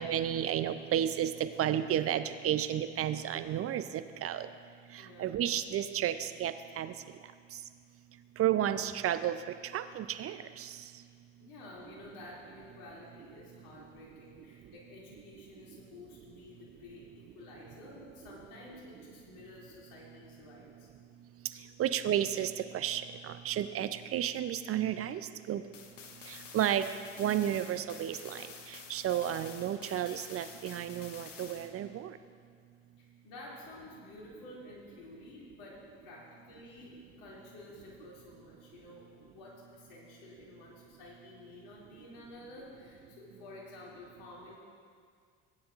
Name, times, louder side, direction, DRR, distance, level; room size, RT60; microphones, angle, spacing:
voice 1, 0.0-4.5 5.2-6.9 8.4-9.4 9.7-10.7 21.8-25.2 25.5-25.6 26.3-26.9 27.2-32.1, right 11 dB, 40° right, 11 dB, 0.5 m, -32 dB
voice 2, 5.0-5.3 11.4-21.2 33.0-44.6, left 2 dB, 70° left, -4 dB, 2.8 m, -51 dB
sound 1, 25.7-31.7, left 5 dB, 90° left, 0.8 m, -49 dB
18.0 x 9.5 x 2.5 m, 2.1 s
hypercardioid pair, 55°, 36 cm